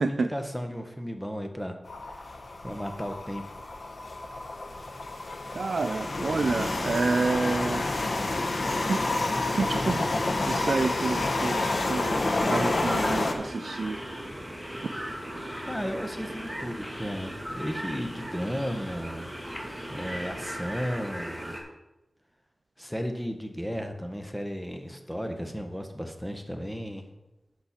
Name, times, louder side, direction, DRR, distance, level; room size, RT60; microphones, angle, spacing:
voice 1, 0.0-2.4 2.6-3.4 15.6-19.3 19.9-21.5 22.8-27.0, equal, 5° left, 5 dB, 1.3 m, -34 dB
sound 1, 1.9-13.3, left 2 dB, 65° left, 1.0 m, -29 dB
voice 2, 5.5-7.9 8.9-9.1 9.5-10.1 10.4-14.0, right 4 dB, 85° right, 8 dB, 0.3 m, -29 dB
sound 2, 7.1-21.6, right 1 dB, 10° right, 2.2 m, -39 dB
sound 3, 9.3-20.8, left 1 dB, 35° left, 1.5 m, -47 dB
10.5 x 6.7 x 4.3 m, 0.98 s
wide cardioid pair, 85°, 0 cm